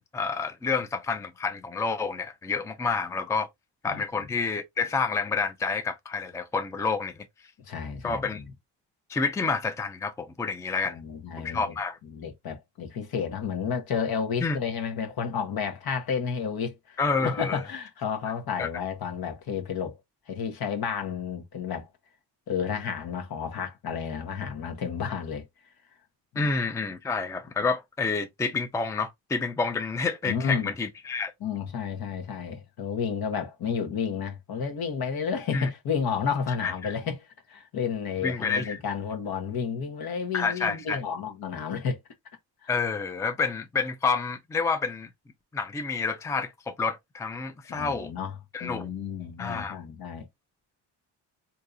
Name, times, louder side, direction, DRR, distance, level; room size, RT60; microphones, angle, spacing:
voice 1, 0.0-3.5 3.8-7.1 8.0-8.4 9.1-11.0 11.4-12.0 14.4-14.6 17.0-17.6 18.6-18.7 26.4-31.3 35.5-35.7 36.6-36.9 38.2-38.8 40.3-41.0 42.7-45.1 45.5-48.1 48.5-48.9 49.4-49.8, left 4 dB, 10° left, 0.4 m, -29 dB
voice 2, 3.9-4.3 7.6-8.5 10.8-11.8 12.0-20.0 20.3-21.9 22.5-25.5 26.3-26.5 30.2-30.7 31.4-42.0 42.6-42.7 47.7-50.3, left 6 dB, 60° left, 1.1 m, -31 dB
3.5 x 2.8 x 2.5 m
cardioid pair, 85°, 42 cm